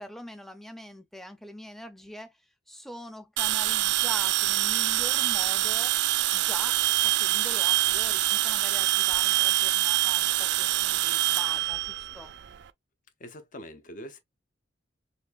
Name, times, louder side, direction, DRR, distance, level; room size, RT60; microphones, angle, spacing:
voice 1, 0.0-2.3 2.7-5.9 6.3-12.3, equal, ahead, 0.6 m, -43 dB
sound 1, 3.4-12.6, right 15 dB, 65° right, 0.4 m, -25 dB
voice 2, 13.2-14.2, equal, 45° left, 0.8 m, -43 dB
4.2 x 3.2 x 2.4 m
head